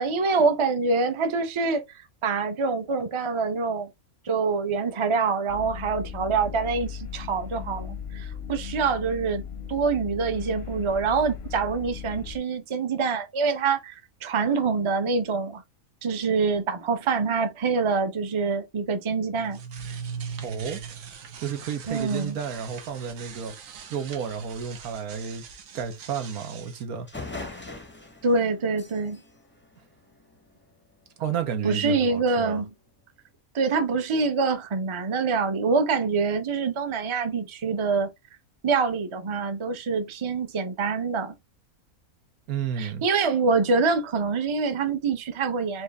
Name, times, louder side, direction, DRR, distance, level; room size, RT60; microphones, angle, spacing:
voice 1, 0.0-1.8 2.2-3.9 4.2-9.4 9.7-15.6 16.0-19.6 21.9-22.4 28.2-29.2 31.6-32.7 33.5-38.1 38.6-41.3 42.8-45.8, right 4 dB, 30° right, 0.5 m, -25 dB
sound 1, 5.5-12.4, left 7 dB, 60° left, 0.7 m, -37 dB
sound 2, 19.3-26.8, right 6 dB, 70° right, 1.2 m, -41 dB
voice 2, 20.4-20.8 21.4-23.5 23.9-25.4 25.7-27.1 31.2-32.6 42.5-43.0, right 7 dB, 85° right, 1.5 m, -31 dB
sound 3, 26.7-26.8 27.1-30.5, left 3 dB, 15° left, 0.5 m, -41 dB
4.6 x 2.6 x 3.3 m
omnidirectional pair, 1.5 m